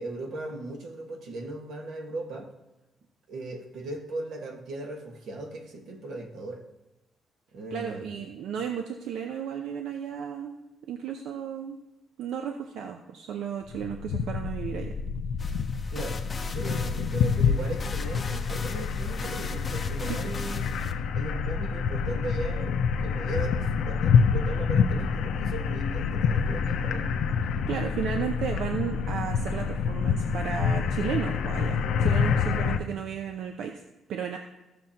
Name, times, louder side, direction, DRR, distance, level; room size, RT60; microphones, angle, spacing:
voice 1, 0.0-2.5 3.3-6.6 7.5-8.3 15.9-16.2 16.5-20.8 21.1-27.1, right 2 dB, 65° right, 2 dB, 1.5 m, -37 dB
voice 2, 7.7-10.6 10.9-11.8 12.2-14.9 27.7-33.8 34.1-34.4, right 7 dB, 85° right, 4 dB, 0.7 m, -33 dB
sound 1, 13.7-32.8, left 6 dB, 80° left, 0.6 m, -27 dB
sound 2, 15.4-20.9, left 4 dB, 25° left, 0.6 m, -41 dB
15.0 x 6.8 x 2.9 m, 1.0 s
cardioid pair, 165°, 0 cm